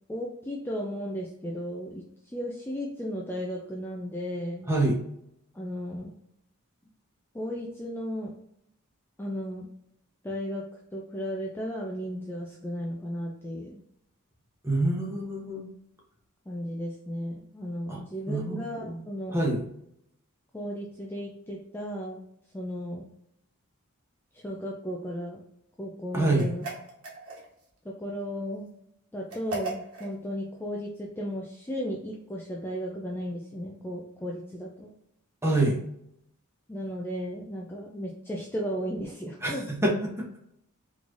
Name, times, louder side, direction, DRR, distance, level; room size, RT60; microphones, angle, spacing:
voice 1, 0.1-2.0 2.3-4.7 5.5-6.1 7.3-8.3 9.2-9.7 10.2-10.7 10.9-13.8 16.5-19.4 20.5-22.3 22.5-23.1 24.3-25.4 25.8-26.6 27.8-28.7 29.1-34.9 36.7-39.7, equal, 10° left, -2 dB, 0.4 m, -35 dB
voice 2, 4.7-5.0 14.6-15.7 17.9-18.0 18.3-19.0 19.3-19.6 26.1-26.5 35.4-35.8 39.4-40.3, right 2 dB, 10° right, -2 dB, 0.9 m, -26 dB
sound 1, 26.4-27.7 29.3-30.1, right 2 dB, 85° right, 1.3 m, -37 dB
3.7 x 3.1 x 2.5 m, 0.76 s
head